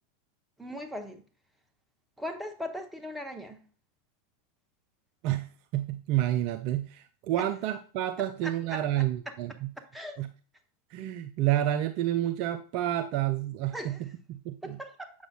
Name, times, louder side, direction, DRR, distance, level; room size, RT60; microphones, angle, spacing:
voice 1, 0.6-1.2 2.2-3.6 7.4-7.5 8.4-8.8 9.9-10.2 13.7-14.0 14.6-15.1, left 1 dB, 5° right, 4 dB, 1.0 m, -38 dB
voice 2, 5.2-9.7 10.2-10.3 10.9-14.8, right 13 dB, 45° right, 9 dB, 0.4 m, -29 dB
7.7 x 6.1 x 2.4 m, 0.40 s
figure-of-eight pair, 90°, 0 cm